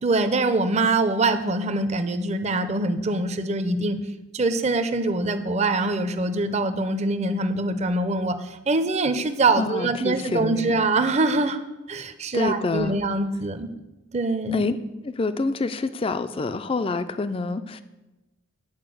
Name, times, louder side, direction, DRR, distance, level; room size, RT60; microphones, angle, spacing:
voice 1, 0.0-4.0 4.3-11.6 11.9-13.7 14.1-14.7, right 2 dB, 30° right, 9 dB, 0.5 m, -24 dB
voice 2, 9.6-10.8 12.3-13.0 14.5-14.8 15.0-17.8, left 3 dB, 25° left, 12 dB, 0.3 m, -27 dB
9.7 x 4.8 x 7.7 m, 1.1 s
head